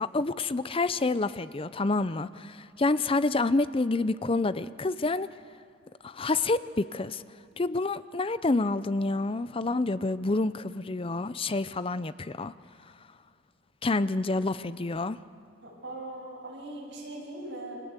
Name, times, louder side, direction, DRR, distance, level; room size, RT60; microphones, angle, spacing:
voice 1, 0.0-5.3 6.0-7.2 7.6-12.5 13.8-15.2, left 3 dB, 30° left, 15 dB, 0.6 m, -28 dB
voice 2, 15.6-17.8, right 1 dB, 60° right, -4 dB, 7.6 m, -40 dB
29.0 x 24.0 x 8.2 m, 2.3 s
head